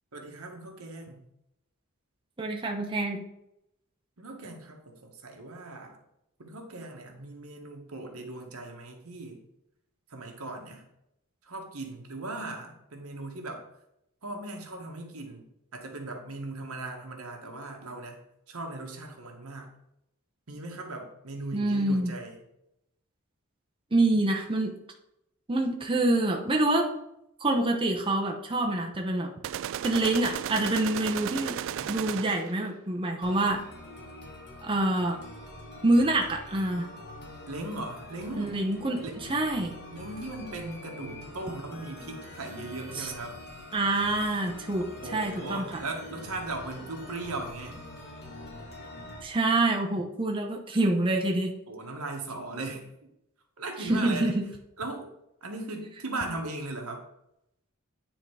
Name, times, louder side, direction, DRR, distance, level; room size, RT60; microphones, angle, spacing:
voice 1, 0.1-1.2 4.2-6.0 6.4-9.4 10.1-10.9 11.4-13.6 14.2-15.4 15.7-18.2 18.5-19.7 20.5-22.4 31.7-31.9 37.5-38.5 39.0-39.1 39.9-43.4 44.7-47.8 51.7-52.9 53.6-54.3 54.8-55.1 55.4-57.0, right 2 dB, 85° right, 2 dB, 1.4 m, -38 dB
voice 2, 2.4-3.2 21.5-22.1 23.9-24.8 25.5-26.9 27.4-29.3 29.8-31.6 31.9-33.6 34.6-35.2 35.8-36.9 38.4-39.7 43.0-43.1 43.7-45.8 49.2-51.5 53.9-54.4, right 2 dB, 25° right, 1 dB, 0.8 m, -26 dB
sound 1, 29.4-32.6, right 10 dB, 65° right, 0.3 m, -34 dB
sound 2, 33.2-49.2, left 1 dB, 50° left, 1.5 m, -45 dB
9.2 x 3.8 x 4.7 m, 0.83 s
head